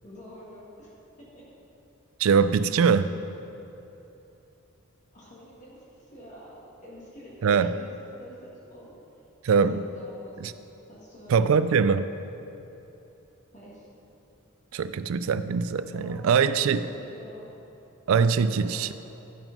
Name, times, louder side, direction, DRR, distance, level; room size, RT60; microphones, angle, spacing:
voice 1, 0.0-0.9 1.2-1.5 2.8-2.9 5.1-6.6 6.8-8.9 9.4-11.5 13.5-13.9 15.9-17.5 18.6-18.9, equal, 35° left, -7 dB, 1.9 m, -47 dB
voice 2, 2.2-3.1 7.4-7.7 9.4-9.8 10.4-10.5 11.3-12.1 14.7-16.8 18.1-18.9, right 6 dB, 75° right, 13 dB, 0.4 m, -22 dB
11.0 x 5.9 x 5.3 m, 2.9 s
head